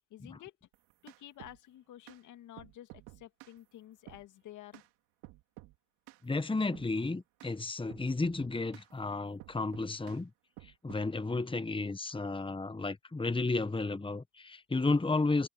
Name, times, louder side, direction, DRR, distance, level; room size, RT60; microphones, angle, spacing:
voice 1, 0.1-0.6 1.0-4.9, left 13 dB, 80° left, 2.3 m, -51 dB
sound 1, 0.7-1.6 2.1-2.2 2.6-3.6 4.1-4.3 4.7-4.9 5.2-5.8 6.1-6.2 6.7-6.9 7.4-7.5 7.9-8.9 9.4-10.2 10.6-11.1, right 19 dB, 90° right, 3.6 m, -52 dB
voice 2, 6.2-10.3 10.6-15.5, left 3 dB, 15° left, 1.2 m, -32 dB
hypercardioid pair, 45°, 30 cm